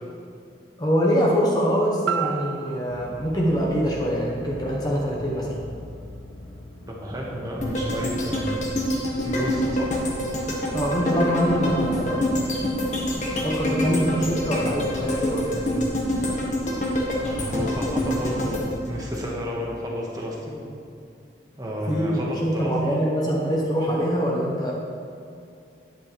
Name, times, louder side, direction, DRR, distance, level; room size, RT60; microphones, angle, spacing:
voice 1, 0.8-5.6 10.7-12.3 13.2-15.9 21.9-24.7, equal, 20° left, -2 dB, 0.8 m, -24 dB
sound 1, 2.0-6.1 6.6-6.7, right 8 dB, 80° right, 0.4 m, -34 dB
sound 2, 2.9-19.5, left 2 dB, 65° left, 1.4 m, -43 dB
voice 2, 6.9-8.5 9.2-9.9 17.2-20.5 21.6-23.0, equal, 20° right, -3 dB, 1.4 m, -31 dB
sound 3, 7.6-19.8 20.2-20.3, left 1 dB, 40° left, 1.4 m, -26 dB
10.5 x 8.8 x 3.4 m, 2.5 s
head